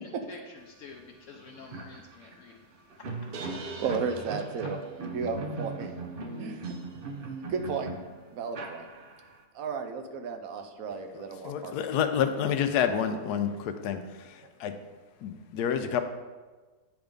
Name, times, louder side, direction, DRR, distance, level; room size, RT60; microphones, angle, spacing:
voice 1, 0.0-2.6 3.7-3.8, left 4 dB, 60° left, 1 dB, 0.9 m, -49 dB
sound 1, 0.9-1.0 1.3-9.4, right 3 dB, 50° right, 0.6 m, -39 dB
voice 2, 3.8-5.9 6.4-6.7 7.5-7.9 8.3-8.9 9.5-11.7, right 5 dB, 65° right, 6 dB, 1.0 m, -33 dB
voice 3, 11.1-14.7 15.2-16.0, left 8 dB, 80° left, 8 dB, 1.1 m, -29 dB
8.7 x 3.5 x 5.2 m, 1.3 s
omnidirectional pair, 1.7 m